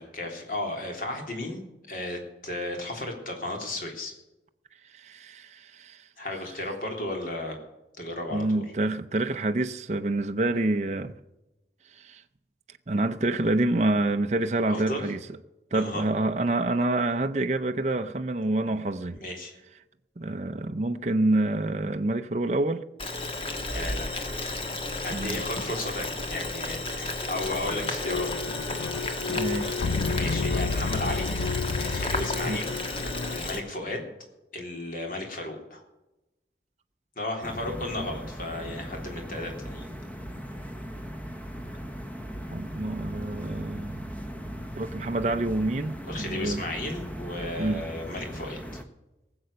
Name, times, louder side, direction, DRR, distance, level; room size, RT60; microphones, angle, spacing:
voice 1, 0.0-4.1 6.2-7.6 8.0-8.6 14.6-15.1 15.7-16.0 19.1-19.5 23.7-24.4 25.0-28.3 29.9-31.3 31.8-34.1 34.5-35.8 37.2-39.8 46.1-48.8, left 1 dB, 50° left, 3.4 m, -34 dB
voice 2, 4.8-6.1 8.3-11.1 11.9-12.2 12.9-15.2 15.7-19.2 20.2-22.8 25.1-25.6 29.3-29.8 32.5-32.6 42.5-44.0 44.8-46.6 47.6-47.9, right 2 dB, 40° right, 0.6 m, -27 dB
Boiling, 23.0-33.6, left 2 dB, 30° left, 1.6 m, -33 dB
sound 1, 28.0-33.4, left 4 dB, 85° left, 0.6 m, -30 dB
sound 2, 37.4-48.8, equal, 10° left, 1.0 m, -38 dB
18.5 x 7.8 x 6.7 m
head